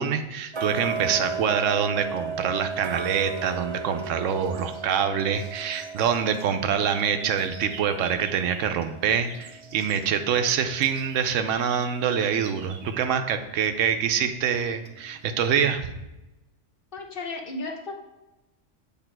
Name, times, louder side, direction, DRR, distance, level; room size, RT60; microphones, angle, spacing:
voice 1, 0.0-16.0, right 7 dB, 90° right, 8 dB, 1.0 m, -25 dB
Tick-tock, 0.5-11.4 11.8-11.9 12.4-12.5 13.0-13.1 13.6-13.7 14.2-14.3 14.9-15.0 15.4-15.5, right 4 dB, 45° right, 0.3 m, -35 dB
sound 1, 3.1-3.9 4.3-8.8 9.0-13.0, right 5 dB, 70° right, 1.0 m, -46 dB
voice 2, 16.9-17.9, left 2 dB, 50° left, 2 dB, 0.9 m, -34 dB
8.2 x 3.5 x 4.5 m, 0.98 s
omnidirectional pair, 1.3 m